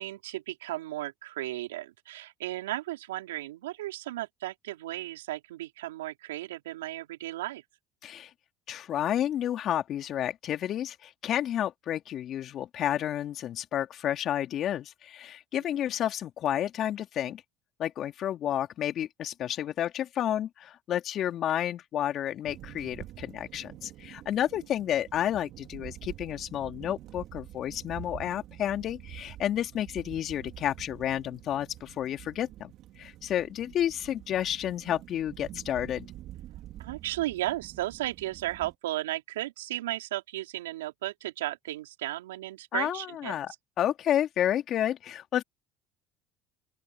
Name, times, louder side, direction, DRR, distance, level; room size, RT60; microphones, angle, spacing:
voice 1, 0.0-7.6 15.5-15.8 36.8-43.4, right 15 dB, 90° right, 4.3 m, -35 dB
voice 2, 8.7-17.4 17.8-32.7 33.0-36.1 42.7-45.4, left 11 dB, 50° left, 2.8 m, -31 dB
sound 1, 22.4-38.7, right 14 dB, 60° right, 2.7 m, -47 dB
open air
hypercardioid pair, 80°, 0 cm